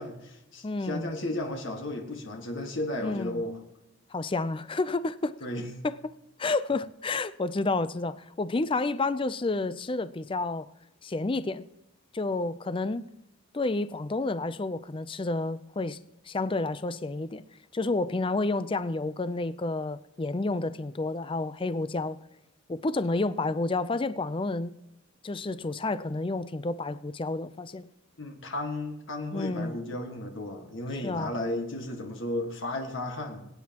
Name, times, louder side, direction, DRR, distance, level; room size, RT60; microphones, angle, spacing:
voice 1, 0.0-3.6 5.4-5.7 28.2-33.5, left 1 dB, 60° left, 1.7 m, -34 dB
voice 2, 0.6-1.1 3.0-3.4 4.1-5.4 5.8-6.0 6.4-10.7 11.0-11.7 12.1-13.1 13.5-16.0 16.3-17.4 17.7-22.2 22.7-24.7 25.2-27.9 29.3-29.8 31.0-31.3, left 3 dB, 25° left, 0.4 m, -30 dB
22.5 x 9.4 x 2.9 m
head